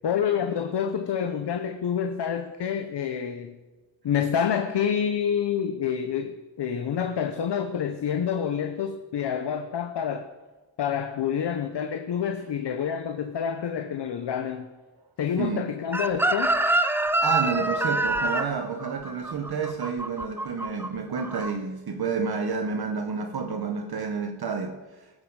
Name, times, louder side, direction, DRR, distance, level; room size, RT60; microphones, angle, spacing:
voice 1, 0.0-3.6 4.0-10.3 10.8-14.7 15.2-16.6, left 8 dB, 60° left, 0.8 m, -28 dB
voice 2, 15.4-15.7 17.2-25.1, right 5 dB, 55° right, 1.1 m, -30 dB
Chicken rooster, 15.9-20.9 21.2-21.5, right 2 dB, 5° right, 0.4 m, -25 dB
16.0 x 7.8 x 4.8 m
wide cardioid pair, 110°, 46 cm